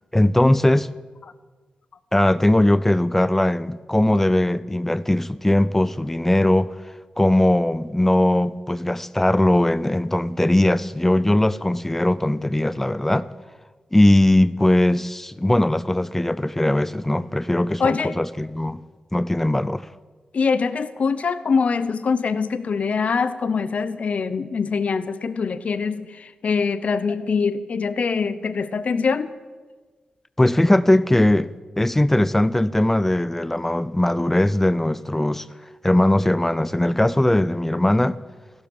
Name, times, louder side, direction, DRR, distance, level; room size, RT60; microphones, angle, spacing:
voice 1, 0.1-0.9 2.1-6.7 7.2-13.3 13.9-18.8 19.1-19.9 30.4-35.5 35.8-38.2, left 1 dB, 10° left, 0.5 m, -19 dB
voice 2, 17.8-18.1 20.3-29.3, left 5 dB, 60° left, 0.8 m, -23 dB
15.0 x 12.0 x 7.1 m
wide cardioid pair, 100°, 3 cm